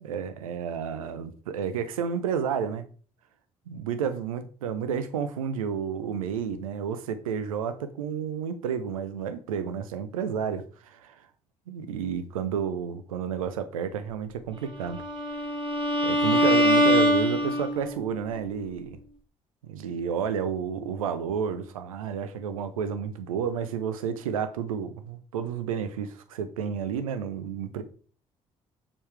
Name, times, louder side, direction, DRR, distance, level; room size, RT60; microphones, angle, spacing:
voice 1, 0.0-2.8 3.7-11.3 11.7-15.0 16.0-19.0 19.6-27.8, right 7 dB, 85° right, 0.7 m, -31 dB
Bowed string instrument, 14.9-18.0, equal, 30° right, 2.1 m, -23 dB
7.0 x 5.4 x 3.3 m
figure-of-eight pair, 50°, 17 cm